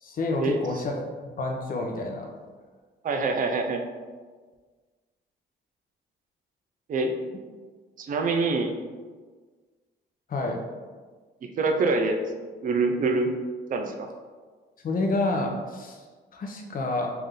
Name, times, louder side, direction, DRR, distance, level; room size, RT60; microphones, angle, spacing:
voice 1, 0.0-2.3 10.3-10.6 14.8-16.0 16.3-17.1, left 2 dB, 45° left, 1 dB, 0.7 m, -29 dB
voice 2, 3.0-3.8 6.9-7.1 8.0-8.8 11.4-13.3 13.7-14.1, right 3 dB, 45° right, 5 dB, 0.5 m, -25 dB
3.4 x 2.6 x 3.6 m, 1.4 s
cardioid pair, 90°, 20 cm